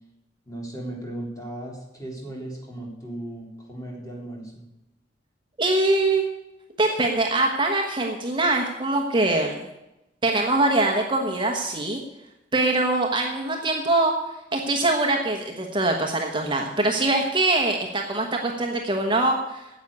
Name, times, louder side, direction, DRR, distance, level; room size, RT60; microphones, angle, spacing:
voice 1, 0.5-4.6, right 1 dB, 20° left, -2 dB, 3.4 m, -36 dB
voice 2, 5.6-6.2 6.8-9.6 10.2-12.0 12.5-14.1 14.5-19.7, right 2 dB, 25° right, 1 dB, 1.1 m, -23 dB
10.0 x 8.1 x 8.6 m, 0.93 s
head